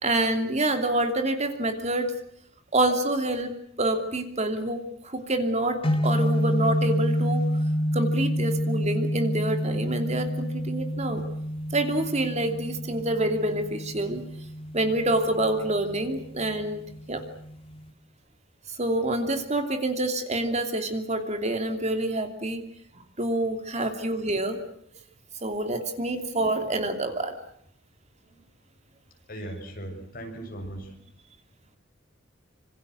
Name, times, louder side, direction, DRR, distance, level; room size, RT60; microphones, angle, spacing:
voice 1, 0.0-2.1 2.7-3.5 3.8-7.4 7.9-11.2 11.7-14.2 14.7-16.8 17.1-17.2 18.7-22.6 23.2-24.6 25.4-27.3, right 1 dB, 35° right, 7 dB, 2.9 m, -27 dB
sound 1, 5.8-17.9, equal, 30° left, 2.2 m, -29 dB
voice 2, 29.3-31.0, right 1 dB, 50° left, 3 dB, 7.2 m, -38 dB
26.5 x 26.5 x 6.4 m, 0.68 s
head